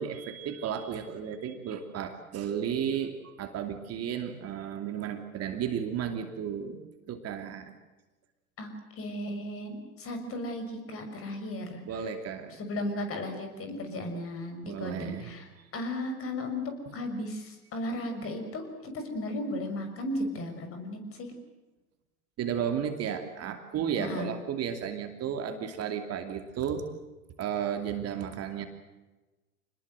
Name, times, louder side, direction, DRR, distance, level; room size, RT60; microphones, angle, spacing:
voice 1, 0.0-7.7 11.9-12.6 14.6-15.3 15.6-15.7 22.4-26.9 27.4-28.7, right 8 dB, 35° right, 6 dB, 2.8 m, -33 dB
voice 2, 9.0-11.8 12.6-15.5 15.7-21.3 24.0-24.3, left 1 dB, 30° left, 6 dB, 6.2 m, -35 dB
27.0 x 20.5 x 7.9 m, 1.1 s
hypercardioid pair, 100°, 43 cm